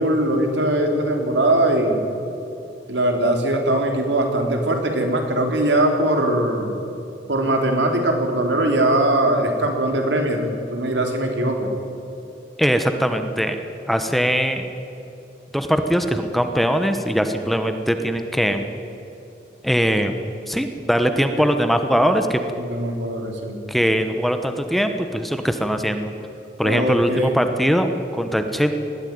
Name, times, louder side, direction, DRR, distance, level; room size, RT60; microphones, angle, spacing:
voice 1, 0.0-2.0 2.9-6.7 7.3-11.7 21.4-21.5 22.6-23.6 26.6-27.4, right 1 dB, 90° right, 3 dB, 3.3 m, -21 dB
voice 2, 12.6-13.6 13.9-14.6 15.5-18.7 19.6-20.1 20.5-22.4 23.7-26.1 26.6-28.7, equal, ahead, 7 dB, 1.0 m, -21 dB
20.0 x 14.5 x 9.6 m, 2.8 s
head